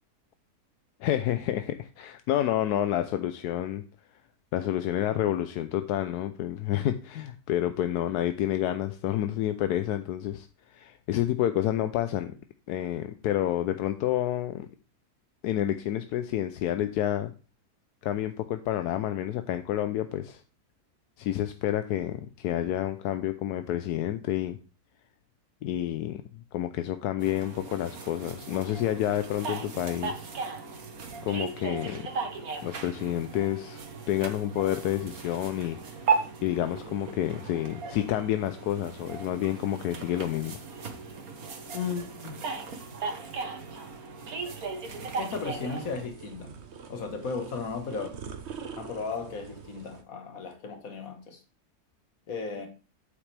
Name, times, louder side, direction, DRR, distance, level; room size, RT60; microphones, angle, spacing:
voice 1, 1.0-3.8 4.5-12.4 12.7-14.7 15.4-17.3 18.0-20.4 21.2-24.6 25.6-26.2 26.5-30.3 31.2-32.0 32.6-35.8 36.4-40.6, left 12 dB, 85° left, 1.1 m, -29 dB
sound 1, 27.2-46.1, right 5 dB, 65° right, 1.7 m, -36 dB
voice 2, 41.7-42.4 45.2-46.5 46.9-48.2 48.8-51.4 52.3-52.7, left 5 dB, 65° left, 1.8 m, -35 dB
sound 2, 44.9-50.0, right 6 dB, 50° right, 1.1 m, -44 dB
8.5 x 8.1 x 3.3 m
omnidirectional pair, 1.6 m